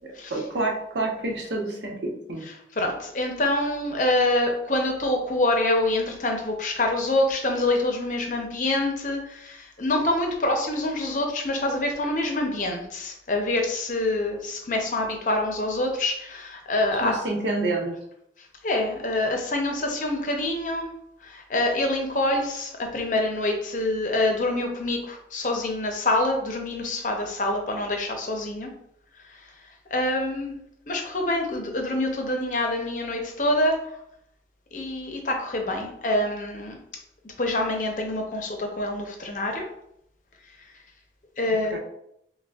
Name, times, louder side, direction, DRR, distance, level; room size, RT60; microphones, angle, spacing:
voice 1, 0.0-2.5 17.0-17.9 41.5-41.8, right 2 dB, 85° right, -1 dB, 0.9 m, -28 dB
voice 2, 2.8-17.2 18.6-20.9 21.2-28.7 29.4-29.5 29.9-30.6 30.9-33.8 34.7-36.8 37.4-39.7 41.4-41.8, left 1 dB, 45° left, 2 dB, 0.6 m, -26 dB
5.9 x 2.2 x 2.4 m, 0.74 s
head